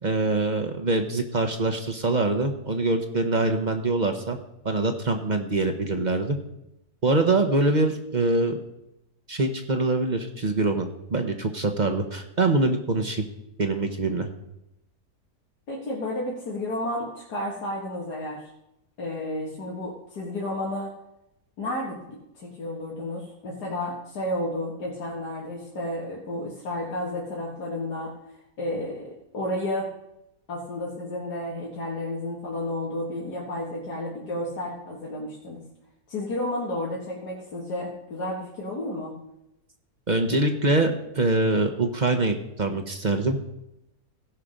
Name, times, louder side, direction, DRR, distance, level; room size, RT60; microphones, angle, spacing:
voice 1, 0.0-4.4 4.6-6.4 7.0-8.6 9.3-13.3 13.6-14.3 40.1-43.4, right 2 dB, 35° right, 6 dB, 0.9 m, -24 dB
voice 2, 15.7-18.4 19.0-20.9 21.6-22.0 22.4-28.1 28.6-29.9 30.5-35.6 36.1-39.1, left 1 dB, 85° left, -4 dB, 2.3 m, -31 dB
17.0 x 5.7 x 5.1 m, 0.86 s
omnidirectional pair, 1.7 m